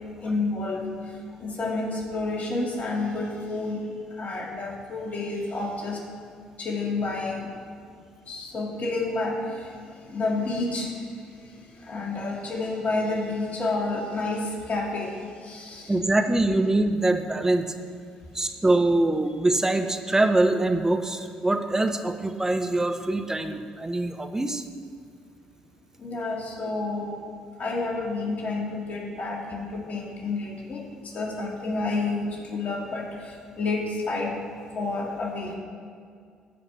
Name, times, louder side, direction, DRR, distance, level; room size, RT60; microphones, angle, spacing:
voice 1, 0.2-0.9 1.4-3.9 4.2-6.0 6.6-7.5 8.3-11.0 11.8-15.1 15.4-15.9 26.0-27.2 27.6-34.4 34.7-35.5, left 3 dB, 45° left, -1 dB, 2.4 m, -29 dB
voice 2, 15.9-17.7 18.3-24.6, right 2 dB, 15° right, 7 dB, 1.1 m, -24 dB
14.0 x 5.2 x 5.9 m, 2.2 s
hypercardioid pair, 50°, 3 cm